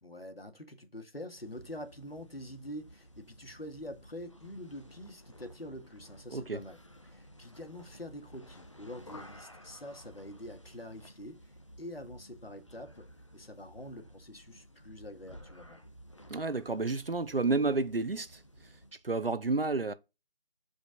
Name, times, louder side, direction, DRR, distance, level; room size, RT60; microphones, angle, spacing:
voice 1, 0.0-6.8 7.0-13.1 13.3-15.8, left 1 dB, 75° left, 2.1 m, -46 dB
sound 1, 1.3-19.0, equal, 30° left, 0.9 m, -54 dB
voice 2, 6.3-6.6 16.3-18.4 19.0-19.9, right 3 dB, 70° right, 0.9 m, -30 dB
12.5 x 5.1 x 2.5 m
figure-of-eight pair, 165°, 30 cm